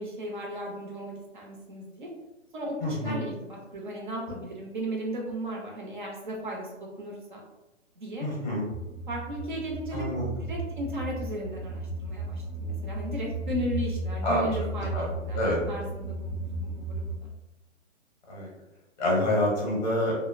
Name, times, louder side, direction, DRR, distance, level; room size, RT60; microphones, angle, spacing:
voice 1, 0.0-2.1 2.5-2.8 3.0-7.4 8.0-8.3 9.1-10.1 10.4-15.4 15.7-17.3, equal, 40° right, -1 dB, 0.5 m, -36 dB
voice 2, 2.8-3.2 8.2-8.7 9.9-10.2 14.2-14.4 14.9-15.1 15.3-15.6 18.3-18.5 19.0-20.2, left 1 dB, 35° left, -3 dB, 0.6 m, -27 dB
sound 1, 8.7-17.2, right 1 dB, 75° right, 0.8 m, -34 dB
2.6 x 2.0 x 2.4 m, 1.0 s
hypercardioid pair, 180°, 38 cm